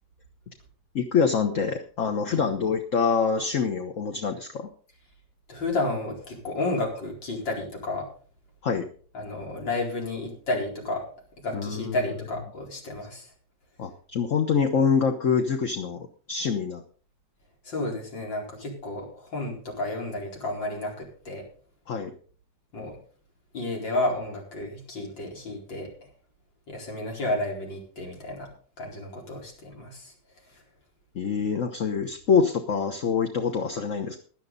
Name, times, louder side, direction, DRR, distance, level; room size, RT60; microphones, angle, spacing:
voice 1, 0.9-4.7 8.6-8.9 11.5-11.9 13.8-16.8 21.9-22.2 31.1-34.2, left 6 dB, 45° left, 5 dB, 1.4 m, -25 dB
voice 2, 5.5-8.1 9.1-11.0 11.4-13.3 17.6-21.4 22.7-23.0 23.5-26.1 26.7-28.5 28.8-30.1 30.4-30.6, left 2 dB, 85° left, 0 dB, 5.1 m, -31 dB
17.0 x 11.5 x 4.0 m, 0.43 s
omnidirectional pair, 2.0 m